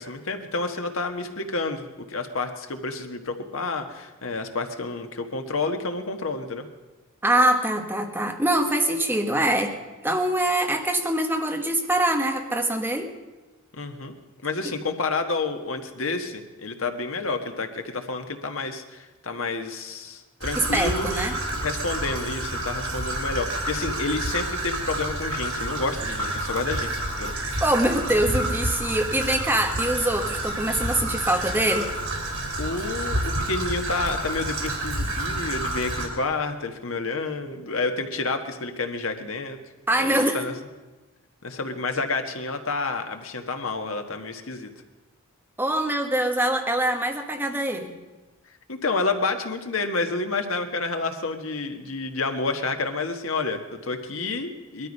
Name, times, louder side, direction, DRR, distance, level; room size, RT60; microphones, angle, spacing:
voice 1, 0.0-6.7 13.7-14.2 14.4-27.3 32.6-39.6 39.9-40.5 41.4-44.7 48.7-54.9, left 3 dB, 75° left, 6 dB, 1.4 m, -29 dB
voice 2, 7.2-9.7 10.0-13.1 20.5-21.3 27.6-31.9 39.9-40.4 45.6-48.0, right 1 dB, 10° right, 3 dB, 1.3 m, -24 dB
Traffic noise roadway noise / Trickle dribble, 20.4-36.1, right 1 dB, 90° right, 3.7 m, -29 dB
20.0 x 13.0 x 5.4 m, 1.2 s
head